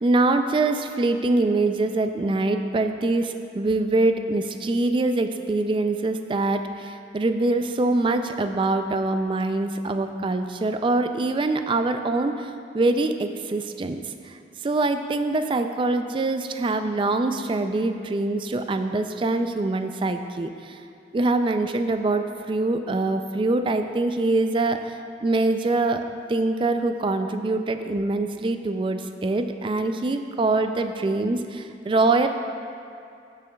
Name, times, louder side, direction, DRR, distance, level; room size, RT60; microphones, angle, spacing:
voice 1, 0.0-14.3 14.6-20.8 21.1-32.3, right 2 dB, 30° right, 7 dB, 0.3 m, -24 dB
14.5 x 6.7 x 2.3 m, 2.4 s
head